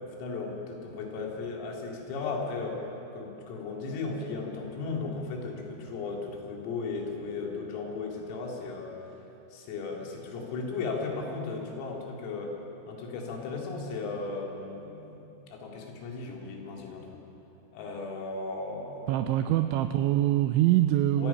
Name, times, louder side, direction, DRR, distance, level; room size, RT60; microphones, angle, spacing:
voice 1, 0.0-2.8 3.1-8.9 9.5-12.5 12.9-15.2 15.5-17.2 17.7-19.3 21.2-21.3, left 4 dB, 90° left, 0 dB, 5.1 m, -36 dB
voice 2, 19.1-21.3, right 13 dB, 85° right, 8 dB, 2.6 m, -24 dB
27.0 x 17.0 x 5.7 m, 2.9 s
omnidirectional pair, 5.9 m